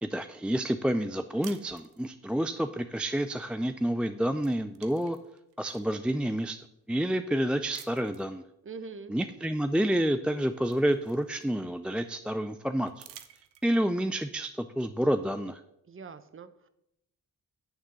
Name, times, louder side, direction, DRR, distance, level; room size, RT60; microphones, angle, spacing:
voice 1, 0.0-5.2 5.6-6.6 6.9-8.4 9.1-13.0 13.6-15.6, right 1 dB, 5° right, 9 dB, 0.3 m, -29 dB
sound 1, 1.4-2.4 3.8-4.0 4.3-6.0 6.6-6.7 7.7-8.3 9.8-9.9 10.3-11.8 12.9-14.0, right 11 dB, 80° right, 0.7 m, -52 dB
voice 2, 8.6-9.2 15.9-16.7, right 4 dB, 30° right, 12 dB, 0.8 m, -43 dB
9.1 x 3.6 x 6.9 m, 0.82 s
supercardioid pair, 45°, 43 cm